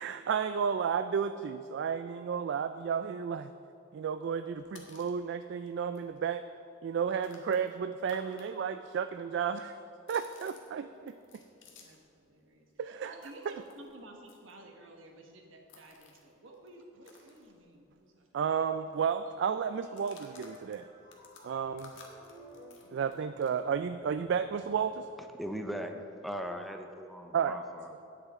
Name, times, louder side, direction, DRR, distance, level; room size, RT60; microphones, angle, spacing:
voice 1, 0.0-3.5 3.9-6.4 6.8-9.8 10.1-11.1 12.8-13.1 18.3-20.9 21.4-21.9 22.9-25.1 27.3-27.6, right 7 dB, 60° right, 10 dB, 0.3 m, -32 dB
sound 1, 4.5-5.2 5.7-5.8 5.9-8.5 8.7-12.1 12.4-18.1 18.3-18.5 18.7-19.1 19.8-23.6, left 4 dB, 70° left, 1.5 m, -57 dB
voice 2, 11.7-18.4, right 1 dB, 85° right, 2 dB, 1.4 m, -53 dB
sound 2, 19.3-26.0, equal, 35° left, 2.5 m, -56 dB
voice 3, 25.4-25.9 26.2-28.0, equal, ahead, 4 dB, 0.6 m, -39 dB
17.0 x 6.8 x 3.6 m, 2.7 s
head